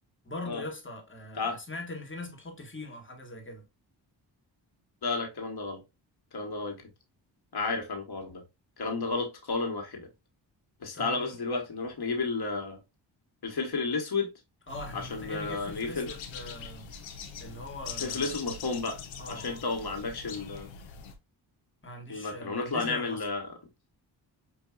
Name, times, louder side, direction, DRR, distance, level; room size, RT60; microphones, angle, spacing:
voice 1, 0.2-3.7 10.9-11.4 14.7-16.9 17.4-18.4 19.2-19.6 21.8-23.2, left 2 dB, 25° left, 1.6 m, -41 dB
voice 2, 5.0-5.8 6.3-6.8 7.5-8.4 8.8-10.1 10.8-12.8 13.4-14.3 14.9-16.1 18.0-19.0 19.3-20.7 22.1-23.5, left 3 dB, 55° left, 1.4 m, -32 dB
sound 1, 14.7-21.2, left 6 dB, 75° left, 0.9 m, -42 dB
5.6 x 2.6 x 2.4 m
cardioid pair, 55°, 46 cm